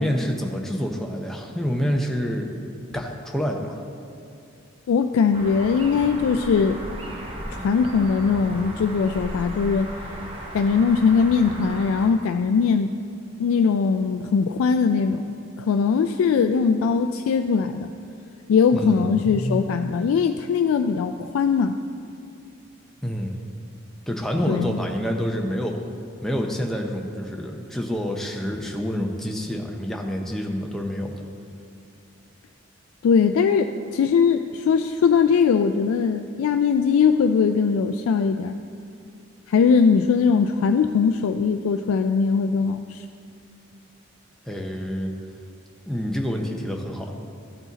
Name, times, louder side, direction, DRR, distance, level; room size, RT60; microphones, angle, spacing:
voice 1, 0.0-2.5 2.9-3.8 18.7-19.6 23.0-23.4 24.1-25.8 26.2-31.2 44.5-45.1 45.9-47.1, equal, ahead, 0 dB, 0.5 m, -27 dB
voice 2, 4.9-6.8 7.5-9.9 10.5-12.9 13.4-17.9 18.5-21.8 24.5-24.7 33.0-38.6 39.5-43.0, left 5 dB, 85° left, 7 dB, 0.3 m, -20 dB
sound 1, 5.3-12.1, right 1 dB, 25° right, 0.9 m, -36 dB
13.5 x 4.8 x 3.9 m, 2.5 s
head